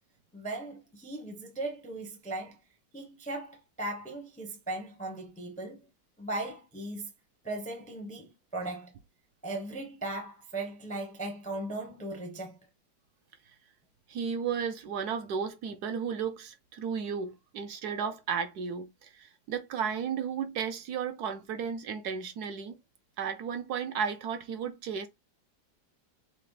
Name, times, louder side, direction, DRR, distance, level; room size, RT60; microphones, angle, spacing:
voice 1, 0.3-2.6 2.9-5.9 6.2-7.1 7.4-8.9 9.4-12.6, right 2 dB, 10° left, 0.4 m, -38 dB
voice 2, 14.1-22.8 23.2-25.1, right 7 dB, 70° right, 1.0 m, -34 dB
5.7 x 2.0 x 3.2 m
omnidirectional pair, 1.9 m